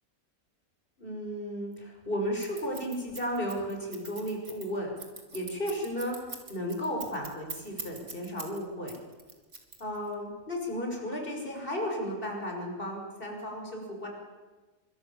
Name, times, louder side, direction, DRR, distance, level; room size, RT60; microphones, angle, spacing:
voice 1, 1.0-4.9 5.3-8.9 9.8-14.1, equal, 40° left, 1 dB, 6.6 m, -34 dB
Scissors, 2.4-8.6 8.9-10.1, right 3 dB, 60° right, 3.6 m, -42 dB
27.5 x 24.5 x 7.3 m, 1.3 s
omnidirectional pair, 1.4 m